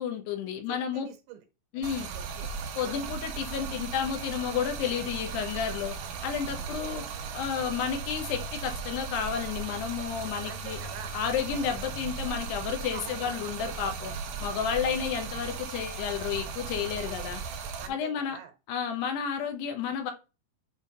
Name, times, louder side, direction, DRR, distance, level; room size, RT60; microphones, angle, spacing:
voice 1, 0.0-1.1 1.7-2.1 2.8-5.9 6.2-7.0 7.3-10.8 11.1-14.1 14.4-17.4 17.9-18.4 18.7-20.1, left 7 dB, 75° left, 3.2 m, -31 dB
voice 2, 0.7-1.5 1.8-2.5 2.8-3.0 6.6-7.3 7.6-7.8 10.5-11.2 11.5-11.7 12.9-13.3 14.4-15.0 17.8-18.5, right 9 dB, 85° right, 3.5 m, -47 dB
Stream, 1.8-17.9, right 5 dB, 65° right, 2.9 m, -37 dB
8.7 x 3.7 x 5.2 m
omnidirectional pair, 5.0 m